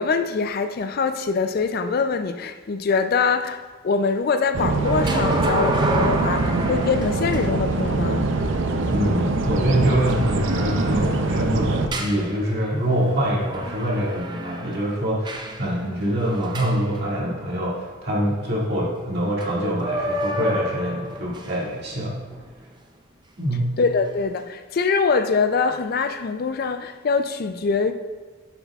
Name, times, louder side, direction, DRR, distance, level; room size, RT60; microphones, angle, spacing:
voice 1, 0.0-8.3 23.8-27.9, left 4 dB, 50° left, 0.4 m, -23 dB
sound 1, 4.5-11.9, right 3 dB, 70° right, 0.6 m, -23 dB
sound 2, 4.8-17.6 19.4-19.5 19.8-21.6 22.3-22.5, right 1 dB, 20° right, 0.5 m, -30 dB
voice 2, 8.9-22.2 23.4-23.8, equal, 55° right, 2.1 m, -25 dB
9.5 x 7.2 x 2.4 m
head